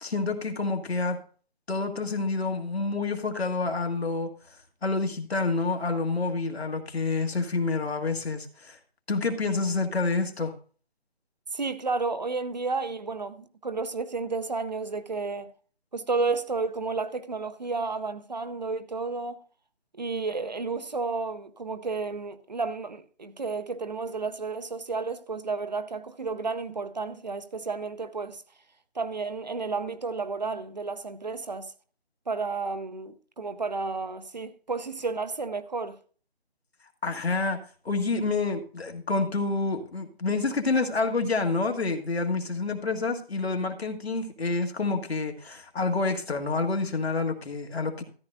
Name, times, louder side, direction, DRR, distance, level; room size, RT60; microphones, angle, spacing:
voice 1, 0.0-1.2 1.7-4.3 4.8-8.8 9.1-10.5 37.0-37.6 37.8-48.0, left 3 dB, 85° left, 1.7 m, -28 dB
voice 2, 11.5-15.5 15.9-19.4 19.9-28.4 28.9-31.7 32.3-36.0, right 4 dB, 45° right, 0.6 m, -32 dB
13.5 x 10.0 x 2.6 m
figure-of-eight pair, 170°, 31 cm